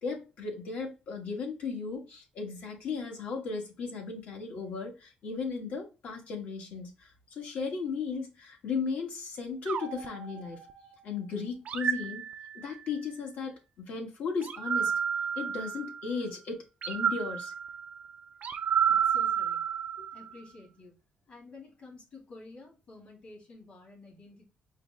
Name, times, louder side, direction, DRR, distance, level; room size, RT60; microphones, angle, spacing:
voice 1, 0.0-10.6 11.0-12.2 12.5-14.9 15.4-17.5 20.0-20.1, left 5 dB, 70° left, 1.3 m, -36 dB
sound 1, 9.7-11.0 11.7-12.9 14.4-16.1 16.8-20.3, right 8 dB, 55° right, 0.4 m, -31 dB
voice 2, 18.9-19.6 20.1-20.9 21.3-24.4, left 3 dB, 50° left, 2.1 m, -50 dB
4.9 x 2.1 x 3.5 m
cardioid pair, 130°, 3 cm